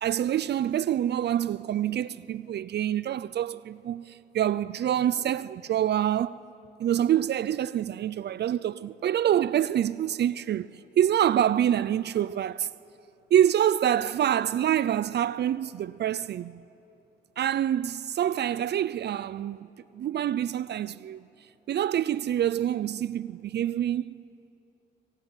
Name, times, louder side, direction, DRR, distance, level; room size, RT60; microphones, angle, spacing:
voice 1, 0.0-6.4 6.8-10.7 11.0-12.7 13.3-16.6 17.4-19.7 19.9-21.2 21.7-24.2, right 10 dB, 55° right, 0.5 m, -26 dB
25.0 x 24.0 x 9.1 m
cardioid pair, 90°, 20 cm